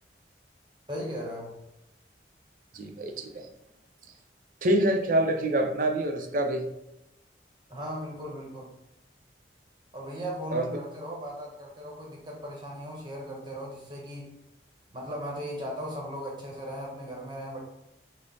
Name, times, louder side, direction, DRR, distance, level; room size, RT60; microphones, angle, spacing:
voice 1, 0.9-1.6 7.7-8.7 9.9-14.3 14.9-17.6, equal, 25° right, -2 dB, 0.8 m, -37 dB
voice 2, 2.7-3.5 4.6-6.7 10.5-10.7, right 1 dB, 45° right, 5 dB, 0.4 m, -26 dB
4.9 x 2.0 x 2.7 m, 0.86 s
head